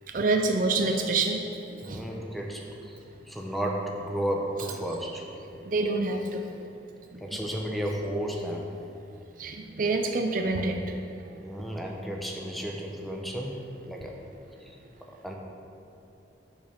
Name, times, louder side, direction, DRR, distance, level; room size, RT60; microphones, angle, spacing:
voice 1, 0.1-1.4 1.7-2.0 5.7-6.4 7.1-7.2 9.4-10.8, right 3 dB, 45° right, 4 dB, 0.5 m, -27 dB
voice 2, 1.8-3.0 3.3-5.3 7.2-8.7 11.4-14.2 14.6-14.8 15.0-15.3, equal, ahead, 0 dB, 0.7 m, -33 dB
7.2 x 5.2 x 5.9 m, 2.8 s
head